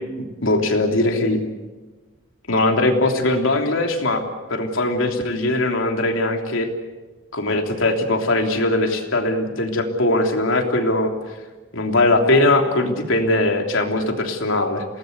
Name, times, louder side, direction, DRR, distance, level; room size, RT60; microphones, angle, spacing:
voice 1, 0.4-1.4 2.5-4.2 4.5-6.7 7.3-11.1 11.7-14.8, left 2 dB, 80° left, 3 dB, 3.3 m, -20 dB
28.0 x 19.0 x 8.2 m, 1.3 s
head